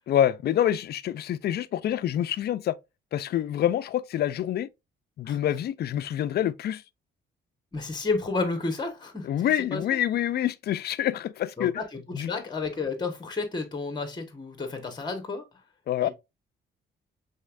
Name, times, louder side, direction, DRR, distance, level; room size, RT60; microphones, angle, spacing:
voice 1, 0.1-2.7 3.1-4.7 5.2-6.8 9.2-11.7 12.1-12.3 15.9-16.1, left 11 dB, 55° left, 0.4 m, -26 dB
voice 2, 7.7-9.3 9.7-9.8 11.6-15.4 16.0-16.1, left 3 dB, 20° left, 1.2 m, -31 dB
5.4 x 3.5 x 2.4 m
cardioid pair, 90°, 20 cm